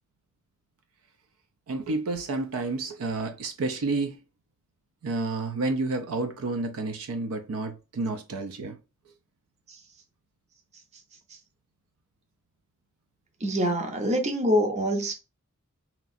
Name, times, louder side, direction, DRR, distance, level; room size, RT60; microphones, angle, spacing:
voice 1, 1.7-4.2 5.0-8.8, right 3 dB, 80° right, 0.4 m, -30 dB
voice 2, 13.4-15.1, equal, 30° right, 0.6 m, -25 dB
2.9 x 2.4 x 2.5 m
head